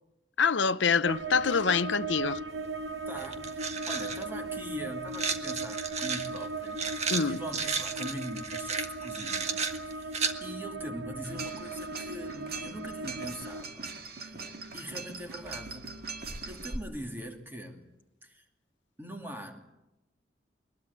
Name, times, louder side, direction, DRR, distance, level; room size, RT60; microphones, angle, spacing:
voice 1, 0.4-2.4 7.1-7.4, left 5 dB, 75° left, 0.8 m, -26 dB
sound 1, 1.0-13.6, right 3 dB, 75° right, 1.2 m, -38 dB
sound 2, 2.7-2.8 3.2-4.2 5.1-10.3, right 5 dB, 35° right, 1.5 m, -33 dB
voice 2, 3.1-13.9 14.2-14.4 14.7-15.9 16.5-17.9 18.2-18.4 19.0-19.6, right 1 dB, 10° right, 2.7 m, -42 dB
sound 3, 11.2-16.8, right 4 dB, 55° right, 2.0 m, -41 dB
22.0 x 21.5 x 8.2 m
head